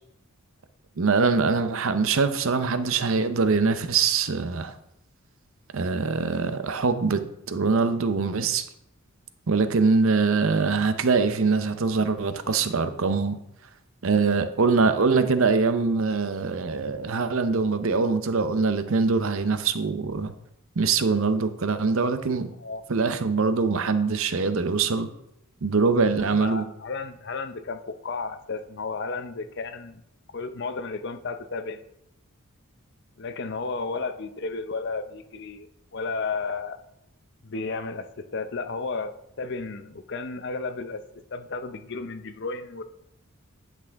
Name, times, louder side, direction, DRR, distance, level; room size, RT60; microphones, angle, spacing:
voice 1, 1.0-4.7 5.7-8.7 9.5-13.4 14.0-20.3 20.8-22.5 22.9-25.1 25.6-26.7, right 4 dB, 65° right, 10 dB, 0.6 m, -23 dB
voice 2, 26.2-30.0 30.3-31.8 33.2-36.8 37.4-41.0 41.3-42.8, left 4 dB, 50° left, 10 dB, 0.6 m, -33 dB
10.5 x 5.9 x 3.5 m, 0.79 s
head